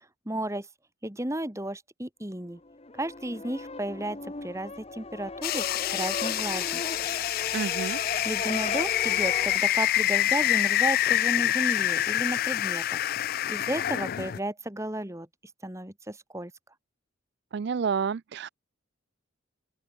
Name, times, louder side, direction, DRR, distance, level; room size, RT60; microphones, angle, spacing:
voice 1, 0.2-0.7 1.0-2.6 2.9-5.6 5.9-6.8 8.2-13.0 13.5-15.3 15.6-16.5, right 1 dB, 15° right, 1.7 m, -33 dB
sound 1, 2.5-9.6, left 3 dB, 30° left, 1.0 m, -37 dB
sound 2, 5.4-14.4, left 13 dB, 45° left, 0.3 m, -27 dB
voice 2, 7.5-8.0 17.5-18.5, right 6 dB, 55° right, 0.4 m, -29 dB
open air
head